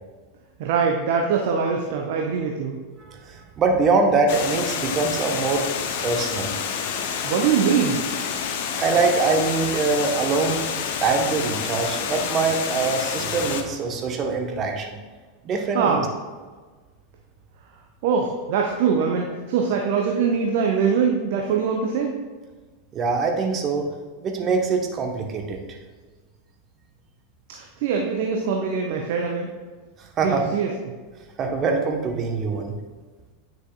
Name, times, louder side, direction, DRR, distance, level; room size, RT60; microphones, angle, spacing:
voice 1, 0.6-2.8 7.2-8.0 15.7-16.0 18.0-22.2 27.5-29.5 30.2-30.7, right 6 dB, 55° right, 1 dB, 0.8 m, -23 dB
voice 2, 3.0-5.7 6.0-6.5 8.7-10.6 11.0-15.0 15.4-16.0 22.9-23.9 24.2-25.6 30.2-30.4 31.4-32.7, right 4 dB, 30° right, 3 dB, 1.1 m, -23 dB
Water, 4.3-13.6, left 7 dB, 55° left, 0.6 m, -28 dB
9.7 x 6.2 x 2.4 m, 1.4 s
figure-of-eight pair, 85°, 0 cm